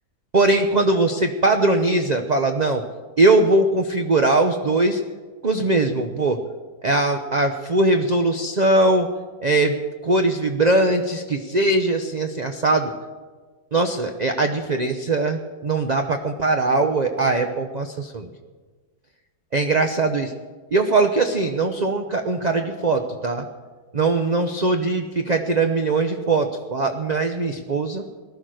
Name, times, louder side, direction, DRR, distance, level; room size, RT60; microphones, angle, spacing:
voice 1, 0.3-2.8 3.2-5.0 5.4-6.4 6.8-9.1 9.4-9.8 10.0-12.9 13.7-18.3 19.5-20.3 20.7-23.5 23.9-28.0, right 2 dB, 35° right, 5 dB, 0.8 m, -20 dB
18.5 x 12.0 x 6.4 m, 1.4 s
omnidirectional pair, 1.7 m